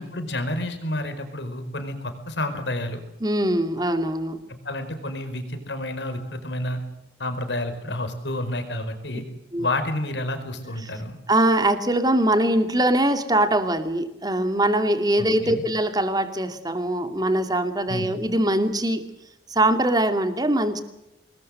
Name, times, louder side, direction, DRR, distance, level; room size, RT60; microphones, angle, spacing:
voice 1, 0.0-3.0 4.5-6.8 7.2-9.2 9.6-11.2 15.2-15.6 17.9-18.2, left 1 dB, 80° left, 8 dB, 4.8 m, -30 dB
voice 2, 3.2-4.4 9.5-9.7 11.3-19.0 19.5-20.8, right 1 dB, 20° right, 8 dB, 2.5 m, -22 dB
26.0 x 21.0 x 7.9 m, 0.82 s
head